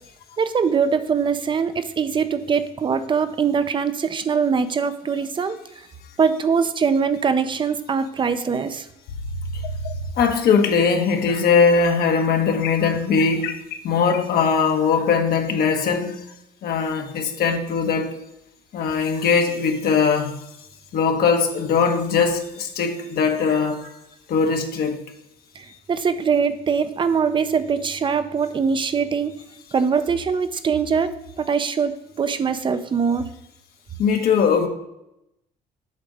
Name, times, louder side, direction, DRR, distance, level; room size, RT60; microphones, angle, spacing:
voice 1, 0.4-5.6 6.2-8.9 25.6-29.3 29.7-31.1 31.4-33.3, right 6 dB, 30° right, 11 dB, 0.6 m, -22 dB
sound 1, 8.4-8.5 9.1-10.1 12.6-14.3, left 1 dB, 85° left, 0.8 m, -30 dB
voice 2, 10.2-13.5 13.8-16.2 16.6-18.2 18.7-20.3 20.9-23.9 24.3-25.0 34.0-34.7, left 5 dB, 65° left, 3 dB, 1.2 m, -20 dB
8.1 x 3.7 x 6.3 m, 0.86 s
cardioid pair, 110°, 17 cm